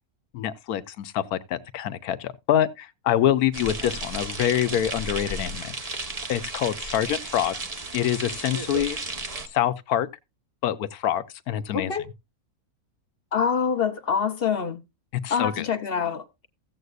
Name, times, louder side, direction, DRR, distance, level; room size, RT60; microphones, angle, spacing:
voice 1, 0.3-6.0 6.3-7.6 7.9-9.0 9.5-10.1 10.6-11.9 15.2-15.7, left 11 dB, 90° left, 1.2 m, -26 dB
sound 1, 3.5-9.5, right 2 dB, 30° right, 1.0 m, -34 dB
voice 2, 11.7-12.0 13.3-14.8 15.3-16.5, left 6 dB, 50° left, 0.9 m, -25 dB
15.5 x 8.0 x 2.4 m
omnidirectional pair, 1.5 m